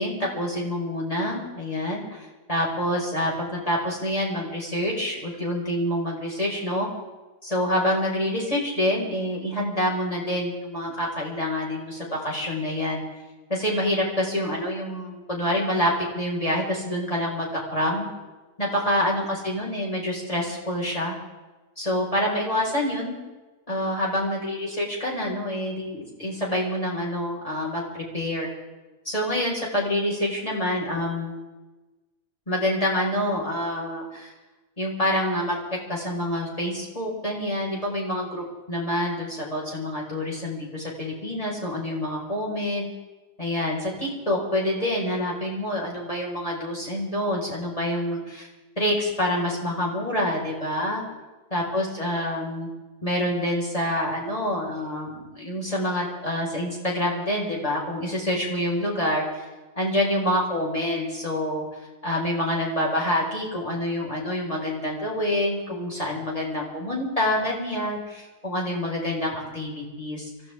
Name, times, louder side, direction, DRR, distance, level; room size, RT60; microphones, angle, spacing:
voice 1, 0.0-6.9 7.4-13.0 13.5-18.1 18.6-21.1 21.8-23.2 23.7-28.5 29.0-31.3 32.5-34.3 34.8-35.6 35.9-42.9 43.4-48.5 48.8-51.0 51.5-52.7 53.0-59.4 59.7-61.7 62.0-70.3, left 1 dB, 20° left, -4 dB, 5.2 m, -27 dB
25.0 x 15.0 x 3.7 m, 1.2 s
omnidirectional pair, 1.8 m